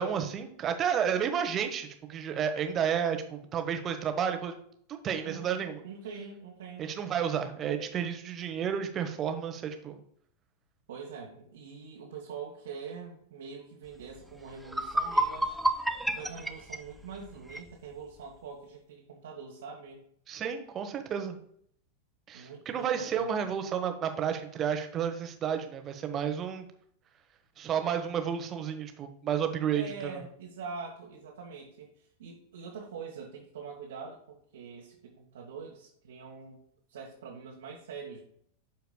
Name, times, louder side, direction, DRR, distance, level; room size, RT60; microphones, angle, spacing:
voice 1, 0.0-4.5 4.9-5.8 6.8-10.0 20.3-21.4 22.3-26.7 27.6-30.2, right 8 dB, 30° right, 7 dB, 1.0 m, -31 dB
voice 2, 5.2-6.9 10.9-15.6 16.1-20.0 22.3-23.5 29.7-36.6 36.9-38.2, right 5 dB, 60° right, -2 dB, 1.3 m, -44 dB
sound 1, 14.2-14.3 14.6-17.7, right 1 dB, 5° right, 0.5 m, -30 dB
12.0 x 4.6 x 2.2 m, 0.66 s
figure-of-eight pair, 90°, 0 cm